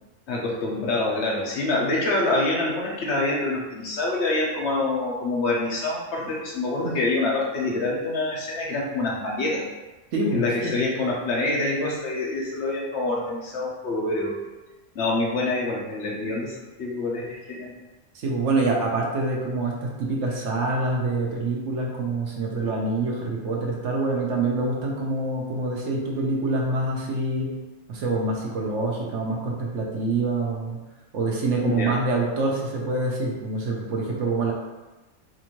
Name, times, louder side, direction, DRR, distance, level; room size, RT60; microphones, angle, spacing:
voice 1, 0.3-9.7 10.3-14.4 14.9-17.8 31.6-31.9, left 2 dB, 60° left, -3 dB, 1.1 m, -26 dB
voice 2, 10.1-10.8 18.2-27.5 27.9-30.8 31.1-34.5, right 2 dB, 70° right, -2 dB, 1.1 m, -26 dB
4.2 x 2.6 x 3.0 m, 1.1 s
omnidirectional pair, 1.4 m